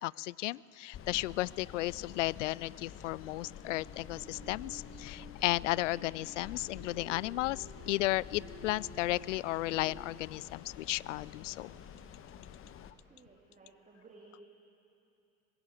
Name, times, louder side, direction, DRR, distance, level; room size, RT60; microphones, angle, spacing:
voice 1, 0.0-11.7, left 18 dB, 60° left, 24 dB, 0.5 m, -34 dB
sound 1, 0.9-12.9, left 8 dB, 30° left, 1.4 m, -49 dB
sound 2, 3.2-10.3, right 1 dB, 35° right, 7.7 m, -54 dB
voice 2, 13.1-14.4, right 3 dB, 20° right, 0 dB, 3.0 m, -57 dB
24.0 x 20.5 x 8.6 m, 2.7 s
figure-of-eight pair, 80°, 43 cm